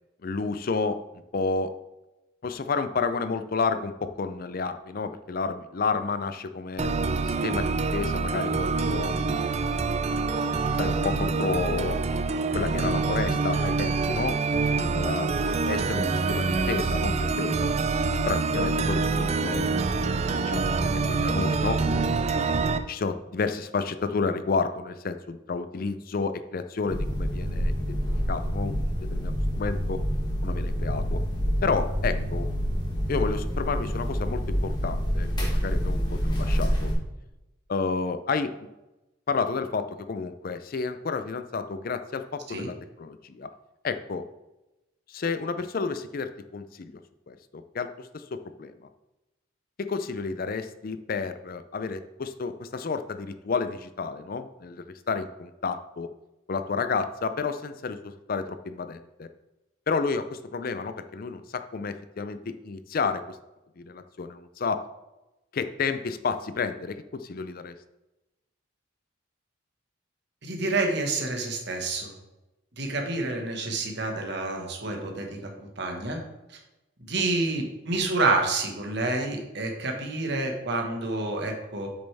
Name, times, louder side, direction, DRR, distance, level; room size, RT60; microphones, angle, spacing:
voice 1, 0.2-1.0 1.3-1.7 2.4-6.9 7.2-9.1 9.5-10.0 10.8-12.0 12.3-14.4 14.7-17.7 18.3-19.6 20.4-21.8 22.3-28.0 28.3-30.0 30.4-31.2 31.6-32.5 33.1-36.9 37.7-38.7 39.3-43.5 43.8-44.3 45.1-46.9 47.3-48.7 49.8-56.1 56.5-59.3 59.9-63.4 63.8-64.8 65.5-67.7, left 4 dB, 45° left, 10 dB, 0.4 m, -31 dB
sound 1, 6.8-22.8, right 4 dB, 30° right, 0.4 m, -26 dB
sound 2, 26.9-36.9, equal, 20° left, 1.8 m, -27 dB
voice 2, 70.4-72.1 72.8-76.2 77.1-81.9, right 2 dB, 55° right, 2 dB, 1.5 m, -28 dB
8.2 x 6.5 x 3.4 m, 0.99 s
head